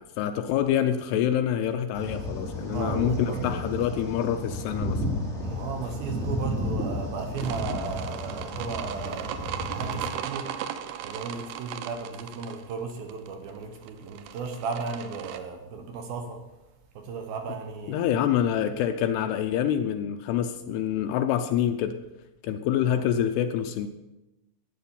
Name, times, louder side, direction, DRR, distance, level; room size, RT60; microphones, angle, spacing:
voice 1, 0.0-5.1 17.9-22.0 22.4-23.9, left 10 dB, 80° left, 8 dB, 2.5 m, -26 dB
sound 1, 1.9-10.0, left 1 dB, 15° left, 3.1 m, -32 dB
voice 2, 2.6-3.7 5.4-16.4 16.9-18.2 22.9-23.0, right 5 dB, 70° right, 5 dB, 2.5 m, -36 dB
sound 2, 7.3-15.4, right 9 dB, 90° right, 2.0 m, -37 dB
12.0 x 8.6 x 7.0 m, 0.98 s
omnidirectional pair, 5.1 m